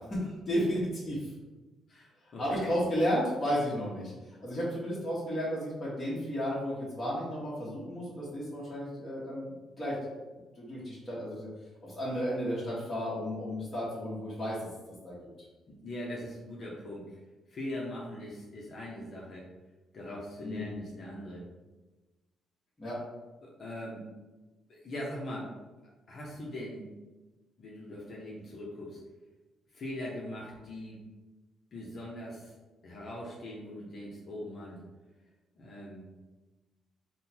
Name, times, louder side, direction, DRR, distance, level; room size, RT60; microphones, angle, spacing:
voice 1, 0.1-1.3 2.4-4.1 4.4-9.5 9.8-10.2 10.5-11.5 11.8-14.7 15.0-15.2 20.4-20.7 22.8-23.0, equal, 25° left, -8 dB, 1.4 m, -33 dB
voice 2, 1.9-2.7 15.7-17.2 17.5-19.4 19.9-21.4 23.4-24.0 24.7-25.5 26.1-26.9 27.6-29.0 29.7-31.0 31.7-32.5 32.8-34.8 35.6-36.0, left 1 dB, 50° left, -4 dB, 0.8 m, -41 dB
3.7 x 2.3 x 4.3 m, 1.2 s
cardioid pair, 90°, 0 cm